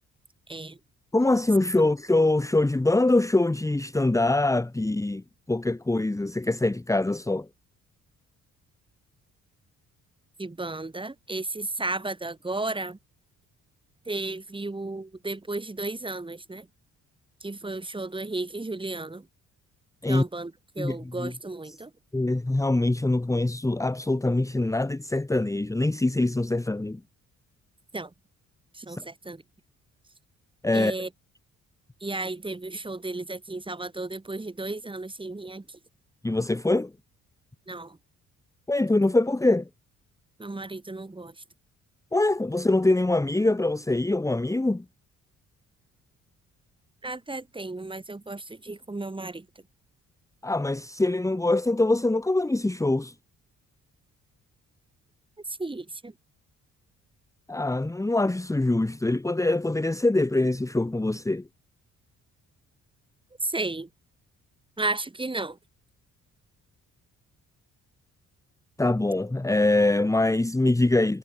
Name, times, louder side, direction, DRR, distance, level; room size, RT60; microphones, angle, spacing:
voice 1, 0.5-0.8 10.4-13.0 14.1-16.7 17.4-19.3 20.1-21.9 27.9-28.1 28.7-29.4 30.7-31.1 32.0-35.8 37.7-38.0 40.4-41.3 47.0-49.5 55.5-56.1 63.4-63.9 64.8-65.6, right 2 dB, 15° right, 5.3 m, -34 dB
voice 2, 1.1-7.5 20.0-20.2 20.8-21.3 22.1-27.0 28.9-29.0 30.6-30.9 36.2-36.9 38.7-39.7 42.1-44.8 50.4-53.1 57.5-61.5 68.8-71.2, left 2 dB, 10° left, 1.6 m, -24 dB
cardioid pair, 90°, 30 cm